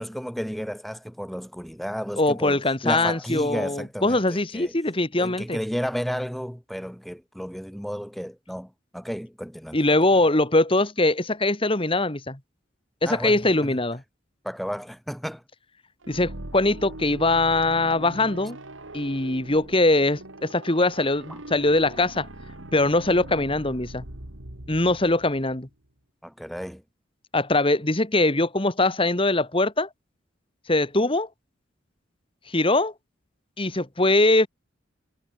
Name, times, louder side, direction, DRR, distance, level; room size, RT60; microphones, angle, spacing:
voice 1, 0.0-4.7 5.2-10.2 13.0-13.8 14.4-15.4 21.3-21.4 26.2-26.8, equal, ahead, 5.4 m, -33 dB
voice 2, 2.2-5.6 9.7-12.4 13.0-14.0 16.1-18.6 18.9-22.3 22.7-24.0 24.7-25.7 27.3-29.9 30.7-31.3 32.5-32.9 33.6-34.5, left 2 dB, 25° left, 2.0 m, -22 dB
sound 1, 16.0-25.7, right 1 dB, 85° right, 3.7 m, -41 dB
head